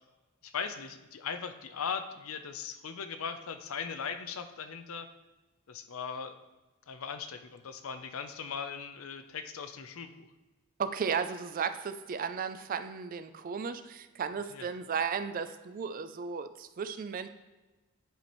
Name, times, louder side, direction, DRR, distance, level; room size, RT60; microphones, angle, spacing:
voice 1, 0.4-5.1 5.7-6.3 6.9-10.3 14.5-14.7, left 6 dB, 85° left, 9 dB, 0.6 m, -39 dB
voice 2, 10.8-17.3, right 6 dB, 40° right, 11 dB, 0.3 m, -35 dB
10.0 x 4.3 x 3.1 m, 1.1 s
head